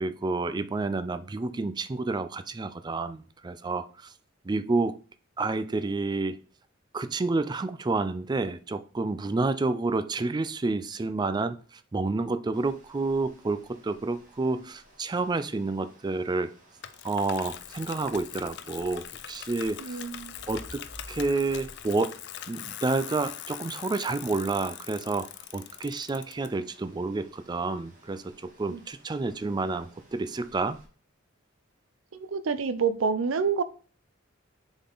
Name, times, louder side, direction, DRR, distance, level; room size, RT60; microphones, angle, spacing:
voice 1, 0.0-3.9 4.5-4.9 5.4-6.4 6.9-11.6 11.9-16.5 17.0-20.0 20.5-20.8 21.1-22.1 22.5-30.8, right 3 dB, 20° right, 11 dB, 0.4 m, -29 dB
sound 1, 12.5-30.8, equal, 45° right, 1.8 m, -55 dB
Bicycle, 16.8-26.5, left 11 dB, 60° left, 0.5 m, -42 dB
voice 2, 19.8-20.4 28.7-28.8 32.3-33.6, right 5 dB, 75° right, 13 dB, 0.5 m, -28 dB
7.0 x 3.7 x 3.9 m, 0.40 s
head